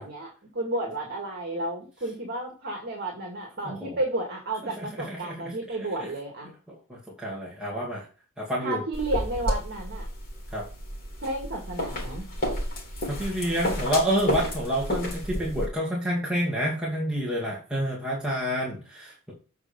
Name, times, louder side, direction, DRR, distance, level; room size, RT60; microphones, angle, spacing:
voice 1, 0.0-6.5 8.6-10.1 11.2-12.3, right 2 dB, 50° right, 1 dB, 2.1 m, -32 dB
voice 2, 3.6-4.0 4.6-5.5 6.0-6.1 6.9-8.1 8.4-8.8 10.5-10.7 13.1-19.3, equal, 5° right, -6 dB, 2.3 m, -29 dB
sound 1, 8.9-15.7, equal, 40° left, 3.5 m, -31 dB
8.1 x 5.1 x 5.3 m, 0.35 s
head